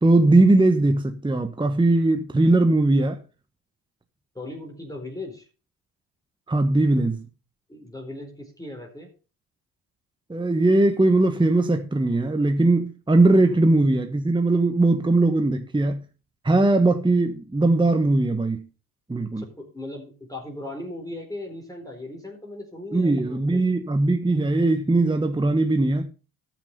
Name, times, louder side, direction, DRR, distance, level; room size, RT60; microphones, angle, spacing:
voice 1, 0.0-3.2 6.5-7.2 10.3-16.0 16.4-18.7 19.1-19.4 22.9-26.1, right 2 dB, 10° right, 1.3 m, -20 dB
voice 2, 4.3-5.5 7.7-9.1 13.4-13.6 19.4-23.7, left 2 dB, 10° left, 4.3 m, -38 dB
13.5 x 6.2 x 5.4 m
hypercardioid pair, 55°, 43 cm